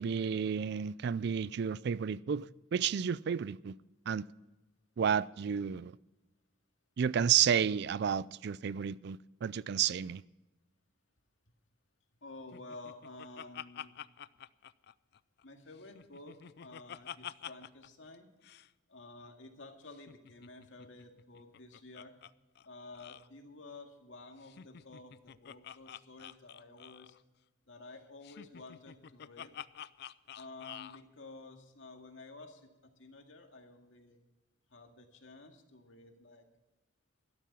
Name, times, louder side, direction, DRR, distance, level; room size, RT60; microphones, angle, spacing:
voice 1, 0.0-3.7 4.1-4.3 5.0-6.0 7.0-10.2, right 8 dB, 60° right, 0.4 m, -31 dB
voice 2, 12.2-14.0 15.4-18.3 18.9-22.2 22.6-27.2 27.7-29.5 30.4-34.2 34.7-36.4, left 2 dB, 80° left, 2.1 m, -52 dB
Laughter, 12.5-15.4 15.8-17.9 18.1-18.2 18.4-18.7 19.9-22.3 22.6-22.7 22.9-23.3 24.4-27.2 28.2-31.0, left 9 dB, 55° left, 0.4 m, -48 dB
13.0 x 12.0 x 5.8 m
head